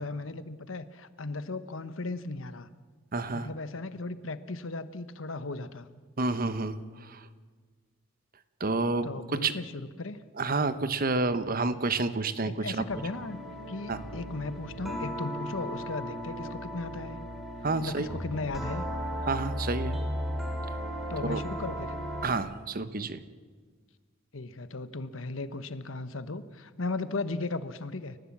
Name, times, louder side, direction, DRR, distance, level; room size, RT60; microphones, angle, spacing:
voice 1, 0.0-2.7 3.3-5.9 9.0-10.2 12.4-13.4 13.7-17.2 17.8-18.8 21.1-21.9 24.3-28.2, left 3 dB, 80° left, 13 dB, 1.1 m, -36 dB
voice 2, 3.1-3.5 6.2-7.3 8.6-9.5 10.4-12.8 13.9-14.0 17.6-18.1 19.3-20.0 21.2-21.4 22.2-23.2, right 3 dB, 45° right, 12 dB, 1.1 m, -29 dB
sound 1, 12.9-22.4, equal, ahead, 3.4 m, -36 dB
30.0 x 15.0 x 7.4 m, 1.5 s
head